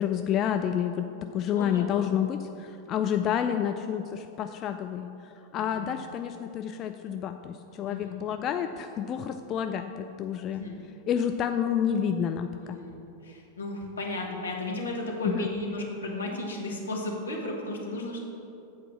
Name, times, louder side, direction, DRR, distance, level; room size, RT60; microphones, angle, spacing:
voice 1, 0.0-5.1 5.5-10.6 11.1-12.8 15.2-15.5, left 9 dB, 35° left, 7 dB, 0.3 m, -29 dB
voice 2, 1.5-2.0 5.6-5.9 7.9-8.2 10.5-10.8 12.6-18.2, left 2 dB, 75° left, -1 dB, 1.4 m, -34 dB
8.4 x 4.6 x 7.1 m, 2.8 s
figure-of-eight pair, 90°, 0 cm